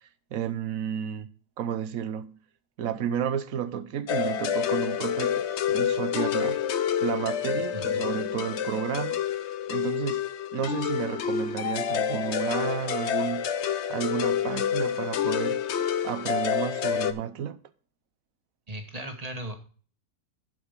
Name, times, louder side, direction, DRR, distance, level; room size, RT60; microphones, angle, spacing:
voice 1, 0.3-1.3 1.6-2.3 2.8-6.6 7.0-9.2 9.7-10.2 10.5-13.5 13.9-15.6 16.0-17.6, right 9 dB, 60° right, 1.1 m, -32 dB
sound 1, 4.1-17.1, left 9 dB, 60° left, 0.8 m, -28 dB
voice 2, 18.7-19.5, right 1 dB, 25° right, 1.5 m, -36 dB
11.0 x 5.1 x 5.1 m
omnidirectional pair, 1.7 m